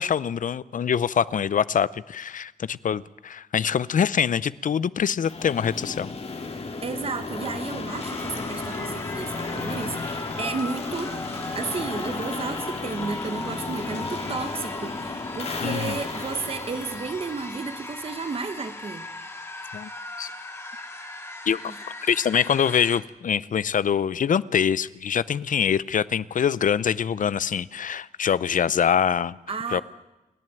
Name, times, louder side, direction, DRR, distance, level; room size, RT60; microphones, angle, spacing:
voice 1, 0.0-6.1 15.6-16.0 19.7-19.9 20.2-20.3 21.5-21.7 22.0-29.4 29.7-29.8, left 8 dB, 70° left, 18 dB, 0.6 m, -24 dB
Dragging the Chains Wet, 5.2-18.1, left 3 dB, 45° left, 2.0 m, -34 dB
voice 2, 6.5-11.2 11.5-19.1 21.7-21.8 29.5-29.8, right 4 dB, 45° right, 9 dB, 1.2 m, -33 dB
sound 1, 7.9-23.0, left 2 dB, 20° left, 2.0 m, -38 dB
28.5 x 11.0 x 9.2 m, 1.0 s
wide cardioid pair, 135°, 14 cm